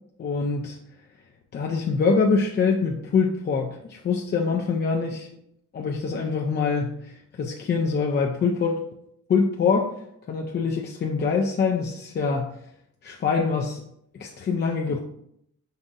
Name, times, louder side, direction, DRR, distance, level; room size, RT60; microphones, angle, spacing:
voice 1, 0.2-0.8 1.5-5.3 5.7-6.9 7.4-8.8 9.3-9.9 10.3-12.5 13.0-13.8 14.2-15.0, left 5 dB, 35° left, 0 dB, 0.4 m, -24 dB
5.3 x 2.6 x 2.5 m, 0.75 s
cardioid pair, 90°, 30 cm